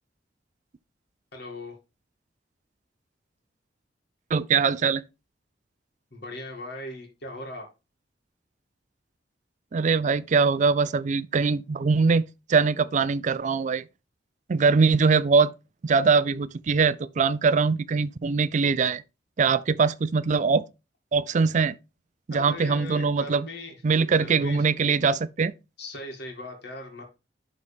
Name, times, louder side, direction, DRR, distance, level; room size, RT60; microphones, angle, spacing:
voice 1, 1.3-1.7 6.1-7.7 22.3-23.7 24.2-24.7 25.8-27.0, left 2 dB, 65° left, 2.3 m, -39 dB
voice 2, 4.3-5.0 9.7-13.8 14.5-15.5 15.8-19.0 19.4-20.7 21.1-21.7 22.3-23.5 23.8-25.5, right 5 dB, 45° right, 0.4 m, -22 dB
11.5 x 4.0 x 3.5 m
head